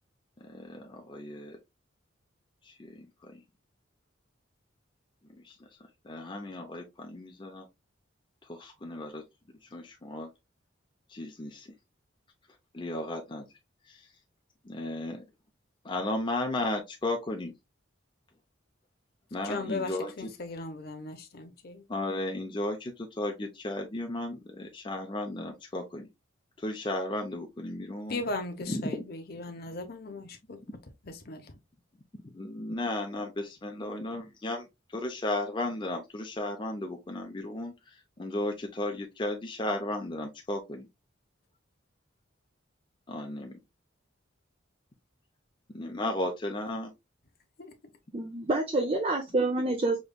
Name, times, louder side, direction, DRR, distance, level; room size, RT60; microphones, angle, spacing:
voice 1, 0.4-1.6 2.6-3.4 5.3-5.7 6.0-7.7 8.5-9.2 9.6-10.3 11.1-11.7 12.7-13.5 13.9-14.1 14.6-15.2 15.8-17.5 19.3-20.1 21.9-26.1 26.6-28.2 28.7-29.1 32.2-40.9 43.1-43.6 45.7-46.9, left 1 dB, 25° left, 0.5 m, -35 dB
voice 2, 19.4-21.8 28.1-30.6 31.0-31.5 47.6-47.7, left 2 dB, 50° left, 0.8 m, -37 dB
voice 3, 48.1-50.0, right 2 dB, 30° right, 0.5 m, -27 dB
5.1 x 3.0 x 2.2 m
head